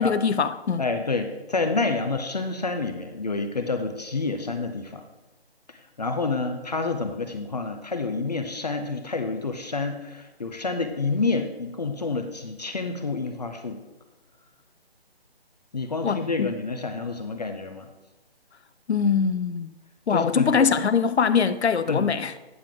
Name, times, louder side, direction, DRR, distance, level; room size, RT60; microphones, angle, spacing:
voice 1, 0.0-0.9 16.0-16.5 18.9-19.7 20.1-22.3, left 6 dB, 90° left, 0.6 m, -23 dB
voice 2, 0.8-5.0 5.7-13.8 15.7-17.9 20.1-20.7 21.9-22.1, left 3 dB, 40° left, 0.6 m, -28 dB
9.3 x 6.5 x 3.8 m
figure-of-eight pair, 165°, 32 cm